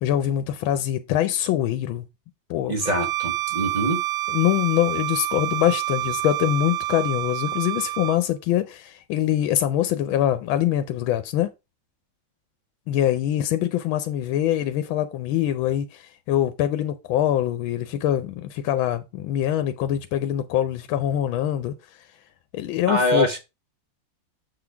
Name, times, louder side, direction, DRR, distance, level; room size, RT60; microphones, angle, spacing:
voice 1, 0.0-2.0 2.5-2.7 4.3-11.5 12.9-21.7 22.5-23.4, left 12 dB, 85° left, 1.4 m, -24 dB
voice 2, 2.7-4.0 22.9-23.4, equal, 35° right, 0.8 m, -24 dB
Bowed string instrument, 2.8-8.2, right 17 dB, 80° right, 1.4 m, -28 dB
7.3 x 3.8 x 4.6 m
omnidirectional pair, 2.1 m